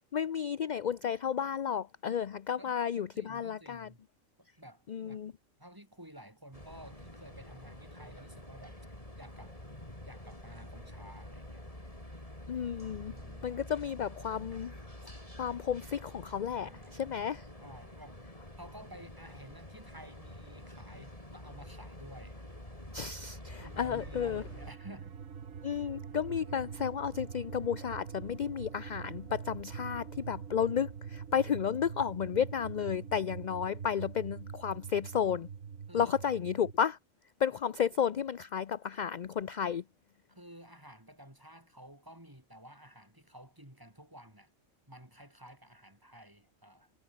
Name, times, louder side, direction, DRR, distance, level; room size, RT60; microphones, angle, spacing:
voice 1, 0.1-3.9 4.9-5.3 12.5-13.2 13.4-14.7 15.4-17.4 22.9-24.4 25.6-35.5 35.9-37.0 37.4-39.8, left 8 dB, 45° left, 0.6 m, -32 dB
voice 2, 2.6-4.0 4.4-5.2 5.6-8.8 9.2-9.6 10.1-11.7 13.1-13.6 16.6-17.0 17.6-18.2 18.6-22.4 23.6-25.2 35.9-36.2 40.3-44.5 44.9-46.9, right 1 dB, 15° right, 5.5 m, -52 dB
sound 1, 6.5-24.7, left 1 dB, 25° left, 5.9 m, -48 dB
sound 2, 23.5-36.8, right 7 dB, 90° right, 1.8 m, -44 dB
omnidirectional pair, 1.3 m